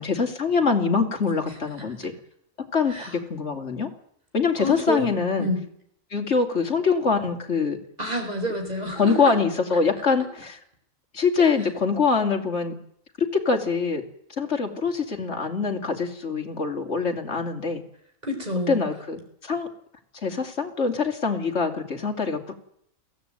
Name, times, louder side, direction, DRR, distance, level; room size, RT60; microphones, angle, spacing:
voice 1, 0.0-2.1 2.7-3.9 4.3-5.5 6.1-7.8 9.0-10.6 11.1-12.7 13.2-14.0 14.3-17.8 18.7-19.7 20.2-22.5, left 5 dB, 60° left, 4 dB, 3.0 m, -24 dB
voice 2, 4.6-5.1 5.4-5.6 8.0-9.3 18.2-18.9, left 1 dB, 30° right, 4 dB, 5.0 m, -28 dB
22.5 x 16.0 x 9.1 m, 0.71 s
omnidirectional pair, 1.4 m